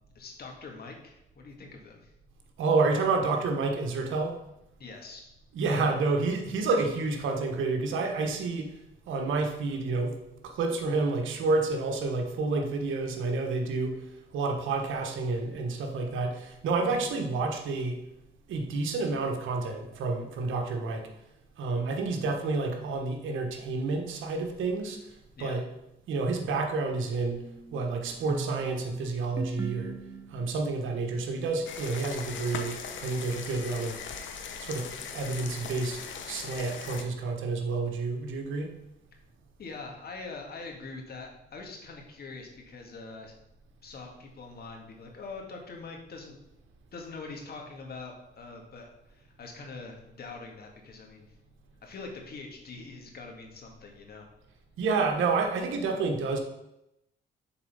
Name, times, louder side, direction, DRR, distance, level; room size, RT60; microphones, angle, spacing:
voice 1, 0.2-2.1 4.8-5.3 16.9-17.0 25.4-25.6 39.6-43.3 43.8-46.4 46.9-51.3 51.8-54.3, left 3 dB, 50° left, 2 dB, 1.8 m, -43 dB
voice 2, 2.6-4.4 5.5-8.7 9.1-10.1 10.4-14.0 14.3-18.0 18.5-21.1 21.6-25.0 25.4-25.7 26.1-27.4 27.7-30.0 30.3-34.0 34.6-36.0 36.3-38.7 54.8-56.4, right 3 dB, 80° right, 4 dB, 1.2 m, -29 dB
sound 1, 27.2-30.8, right 3 dB, 15° right, 0.6 m, -40 dB
sound 2, 31.7-37.0, left 6 dB, 70° left, 0.9 m, -39 dB
7.2 x 4.1 x 5.4 m, 0.85 s
cardioid pair, 90°, 20 cm